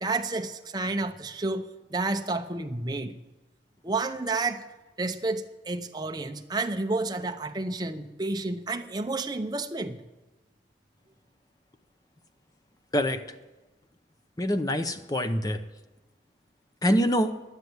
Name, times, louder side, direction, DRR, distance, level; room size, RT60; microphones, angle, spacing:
voice 1, 0.0-3.2 3.8-4.7 5.0-10.0, right 3 dB, 20° right, 7 dB, 0.7 m, -30 dB
voice 2, 14.4-15.6 16.8-17.3, equal, 20° left, 8 dB, 0.7 m, -25 dB
11.5 x 9.3 x 9.5 m, 1.2 s
head